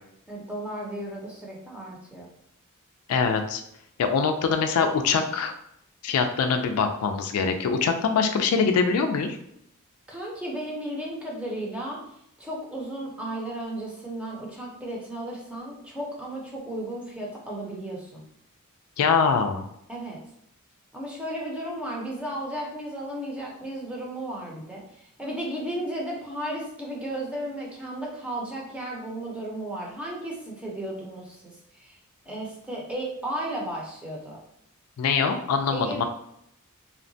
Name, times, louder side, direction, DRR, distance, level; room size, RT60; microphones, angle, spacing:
voice 1, 0.3-2.3 10.1-12.0 12.4-18.2 19.9-20.2 20.9-24.8 25.2-32.0 32.3-34.4 35.7-36.0, right 1 dB, 5° right, -4 dB, 0.6 m, -34 dB
voice 2, 3.1-3.6 4.0-5.5 6.0-9.4 19.0-19.6 35.0-36.0, left 5 dB, 75° left, 6 dB, 0.3 m, -23 dB
2.8 x 2.1 x 2.6 m, 0.75 s
head